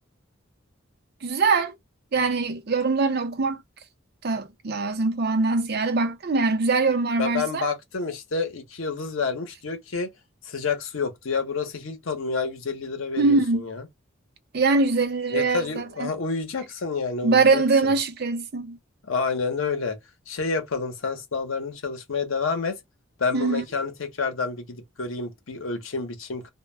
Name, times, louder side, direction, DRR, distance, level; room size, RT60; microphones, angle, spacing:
voice 1, 1.2-1.7 2.1-3.6 4.2-7.6 13.2-13.6 14.5-16.1 17.2-18.8 23.3-23.6, right 3 dB, 50° right, 0.5 m, -23 dB
voice 2, 7.2-10.1 10.4-13.8 15.3-17.9 19.0-20.0 20.3-22.8 23.2-26.5, left 4 dB, 75° left, 0.7 m, -29 dB
2.2 x 2.1 x 3.1 m
head